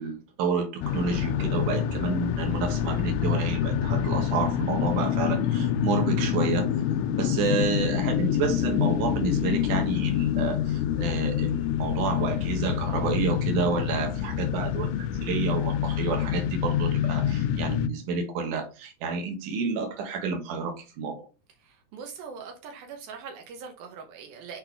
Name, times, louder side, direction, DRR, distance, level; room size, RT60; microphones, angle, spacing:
voice 1, 0.0-6.7 7.2-14.9 15.2-21.2, right 4 dB, 70° right, 2.0 m, -30 dB
sound 1, 0.8-17.9, left 9 dB, 85° left, 2.5 m, -26 dB
voice 2, 21.6-24.6, right 5 dB, 90° right, 2.0 m, -42 dB
7.6 x 4.5 x 3.4 m
omnidirectional pair, 5.7 m